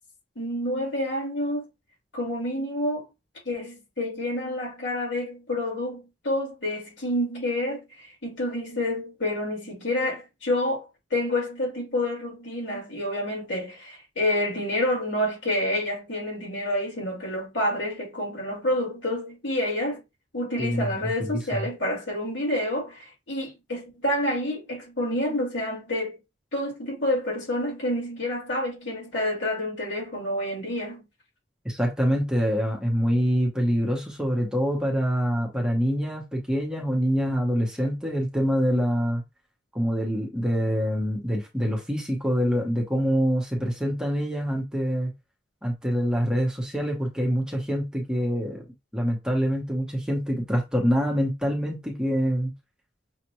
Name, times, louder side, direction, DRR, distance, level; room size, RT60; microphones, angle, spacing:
voice 1, 0.4-1.7 2.1-3.0 3.4-20.0 20.3-26.2 26.5-31.0, left 1 dB, 80° left, 2.7 m, -28 dB
voice 2, 20.6-21.7 31.6-39.2 39.7-45.1 45.6-48.6 48.9-52.5, equal, 5° right, 0.9 m, -25 dB
6.3 x 2.4 x 3.0 m
head